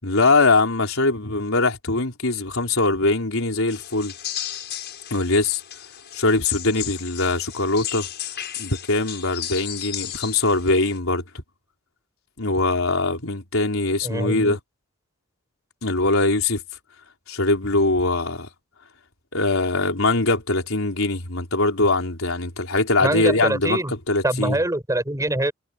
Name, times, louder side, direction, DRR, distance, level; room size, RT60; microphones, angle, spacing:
voice 1, 0.0-4.1 5.1-5.6 6.1-8.1 8.6-11.2 12.4-14.6 15.8-16.6 17.3-18.5 19.3-24.6, left 2 dB, 70° left, 4.7 m, -22 dB
sound 1, 3.7-11.0, left 11 dB, 55° left, 6.6 m, -34 dB
voice 2, 14.0-14.6 23.0-23.9 24.2-25.5, right 1 dB, 15° right, 5.4 m, -24 dB
head